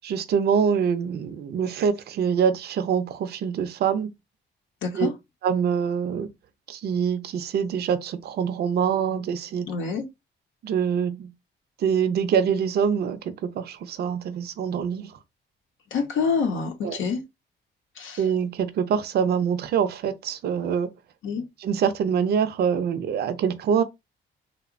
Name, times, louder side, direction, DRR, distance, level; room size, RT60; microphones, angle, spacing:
voice 1, 0.0-4.1 4.9-5.1 5.4-6.3 6.7-9.7 10.6-11.3 11.8-15.1 16.8-17.0 18.2-20.9 21.6-23.8, right 7 dB, 55° right, 0.4 m, -25 dB
voice 2, 9.7-10.0 15.9-17.2 18.0-18.2 21.2-21.4, left 5 dB, 80° left, 0.6 m, -26 dB
2.8 x 2.0 x 2.4 m
cardioid pair, 90°, 20 cm